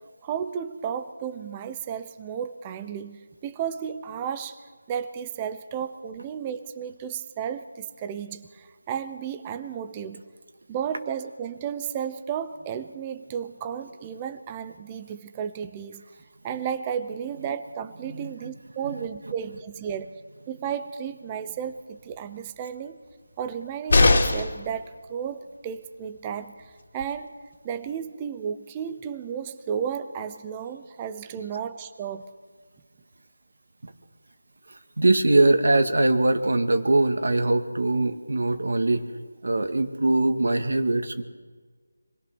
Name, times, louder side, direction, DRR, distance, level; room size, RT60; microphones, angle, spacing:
voice 1, 0.2-4.6 4.9-10.2 10.7-16.0 16.4-20.1 20.5-23.0 23.4-26.5 26.9-27.3 27.6-32.3, right 8 dB, 15° right, 9 dB, 0.8 m, -33 dB
sound 1, 23.9-24.6 26.6-26.7 27.0-27.1, left 2 dB, 50° left, 2.8 m, -19 dB
voice 2, 34.7-39.1 39.4-41.2, right 2 dB, 70° right, 6 dB, 2.3 m, -22 dB
27.0 x 21.0 x 6.3 m, 1.5 s
figure-of-eight pair, 170°, 0 cm